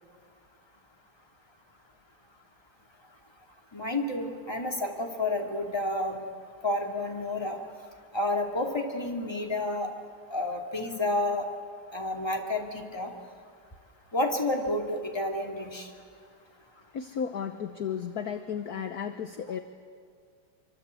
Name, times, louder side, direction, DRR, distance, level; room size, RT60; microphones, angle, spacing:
voice 1, 3.7-6.2 6.6-7.6 8.1-9.9 10.3-11.5 11.9-13.1 14.1-15.9, left 2 dB, 10° left, 1 dB, 2.6 m, -30 dB
voice 2, 16.9-19.6, left 7 dB, 55° left, 8 dB, 1.3 m, -34 dB
26.0 x 24.5 x 8.4 m, 2.2 s
omnidirectional pair, 2.3 m